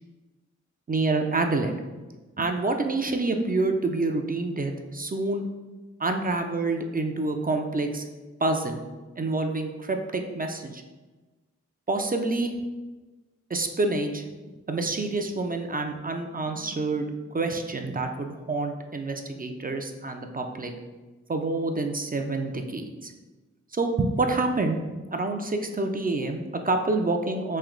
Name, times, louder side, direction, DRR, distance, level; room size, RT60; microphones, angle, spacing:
voice 1, 0.9-1.7 2.4-5.4 6.0-8.0 8.4-8.8 9.2-10.8 11.9-12.5 13.5-14.2 14.7-17.1 17.3-20.7 21.3-23.1 23.7-27.6, right 2 dB, 30° right, 4 dB, 0.4 m, -27 dB
3.2 x 2.8 x 3.7 m, 1.2 s
cardioid pair, 40°, 30 cm